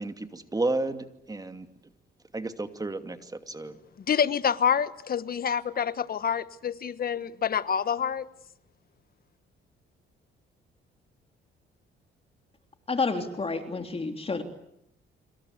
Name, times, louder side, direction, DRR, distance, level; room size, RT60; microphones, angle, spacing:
voice 1, 0.0-1.7 2.3-3.8, right 2 dB, 20° right, 8 dB, 2.6 m, -32 dB
voice 2, 4.1-8.3, left 7 dB, 50° left, 15 dB, 1.3 m, -27 dB
voice 3, 12.9-14.4, left 4 dB, 30° left, 6 dB, 3.3 m, -29 dB
26.5 x 26.5 x 8.3 m, 0.77 s
cardioid pair, 90°, 20 cm